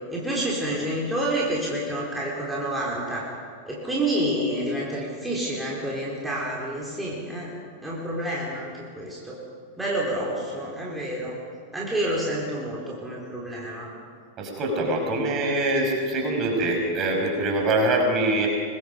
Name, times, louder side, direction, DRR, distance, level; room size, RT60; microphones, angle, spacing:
voice 1, 0.1-3.3 3.7-7.5 7.8-9.4 9.8-11.3 11.7-13.9, right 1 dB, 5° right, -5 dB, 4.3 m, -28 dB
voice 2, 14.4-18.5, right 2 dB, 30° right, 1 dB, 5.7 m, -24 dB
25.0 x 20.5 x 5.2 m, 2.1 s
figure-of-eight pair, 90°, 0 cm